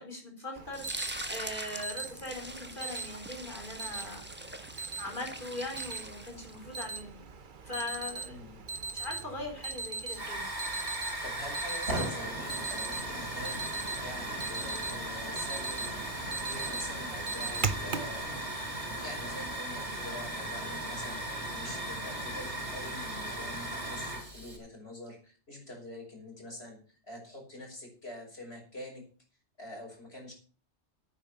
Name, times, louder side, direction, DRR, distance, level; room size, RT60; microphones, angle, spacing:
voice 1, 0.0-4.5 5.0-7.2 7.6-8.4 8.9-10.5, left 2 dB, 50° left, 2 dB, 4.8 m, -40 dB
Alarm, 0.6-18.2, right 4 dB, 50° right, 1.0 m, -40 dB
sound 1, 0.7-6.8, right 1 dB, 10° right, 1.3 m, -42 dB
voice 2, 8.2-8.7 11.2-13.6 14.0-15.9 16.4-18.3 19.0-21.2 21.5-26.8 27.1-29.1 29.6-30.3, left 1 dB, 65° left, 0 dB, 6.1 m, -45 dB
Hiss / Fire, 10.1-24.6, right 1 dB, 85° right, 4.9 m, -37 dB
10.0 x 8.9 x 7.1 m, 0.39 s
omnidirectional pair, 1.1 m